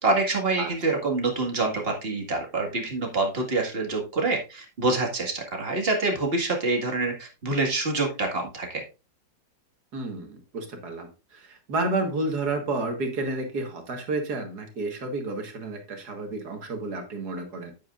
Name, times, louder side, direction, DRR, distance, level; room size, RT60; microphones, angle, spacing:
voice 1, 0.0-8.8, right 3 dB, 35° right, 1 dB, 2.1 m, -26 dB
voice 2, 0.6-0.9 9.9-17.7, right 2 dB, 65° right, 4 dB, 2.2 m, -31 dB
9.4 x 9.2 x 2.5 m, 0.29 s
omnidirectional pair, 1.9 m